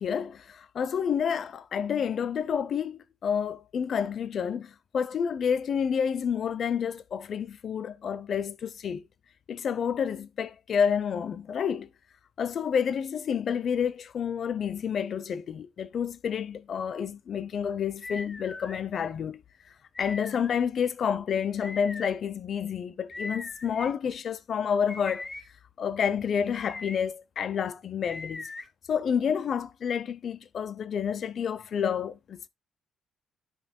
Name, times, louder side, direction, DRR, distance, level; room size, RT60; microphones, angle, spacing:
voice 1, 0.0-9.0 9.5-11.9 12.4-19.4 20.0-25.3 25.8-28.5 28.9-32.5, left 7 dB, 55° left, 0.6 m, -29 dB
sound 1, 18.0-18.8 19.9-20.6 21.6-22.1 23.1-23.9 24.9-25.4 26.5-27.0 28.1-28.7, left 3 dB, 25° left, 1.1 m, -40 dB
12.0 x 4.9 x 2.2 m
cardioid pair, 90°, 0 cm